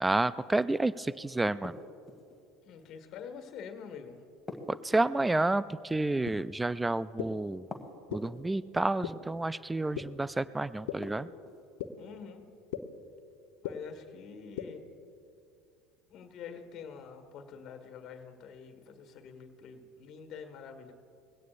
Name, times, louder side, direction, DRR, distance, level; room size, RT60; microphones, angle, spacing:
voice 1, 0.0-1.8 4.7-7.6 8.1-11.3, right 2 dB, 10° right, 17 dB, 0.3 m, -30 dB
sound 1, 1.6-2.4 4.5-5.5 7.7-8.5 11.0-11.7, left 2 dB, 15° left, 2.1 m, -45 dB
voice 2, 2.6-4.2 12.0-12.4 13.6-14.8 16.1-20.9, left 6 dB, 50° left, 7 dB, 1.8 m, -46 dB
sound 2, 6.3-6.4 7.2-7.3 8.1-8.2 9.0-9.1 9.9-10.0 10.9-11.0 11.8-11.9 12.7-12.8 13.6-13.7 14.6-14.7, left 14 dB, 70° left, 0.9 m, -34 dB
21.0 x 16.5 x 2.6 m, 2.4 s
hypercardioid pair, 75°, 0 cm